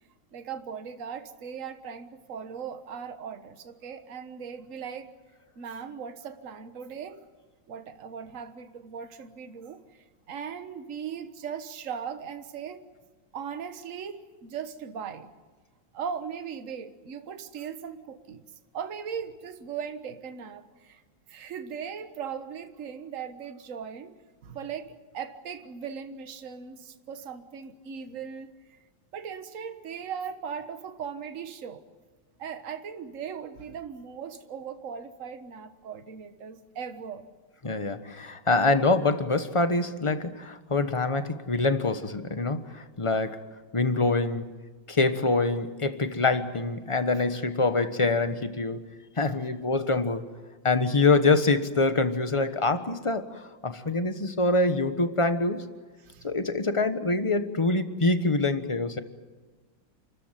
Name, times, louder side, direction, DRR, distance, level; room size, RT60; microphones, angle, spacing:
voice 1, 0.3-5.1 5.6-7.2 7.7-12.8 13.3-15.3 15.9-18.5 18.7-21.0 21.3-24.1 24.4-28.8 29.1-31.8 32.4-37.3 49.2-49.3 56.0-56.3, right 7 dB, 45° right, 9 dB, 1.6 m, -38 dB
voice 2, 37.6-43.4 43.7-44.4 44.9-48.8 49.2-50.2 50.6-55.7 56.2-59.0, left 3 dB, 20° left, 9 dB, 1.0 m, -25 dB
29.5 x 14.5 x 9.1 m, 1.4 s
omnidirectional pair, 2.1 m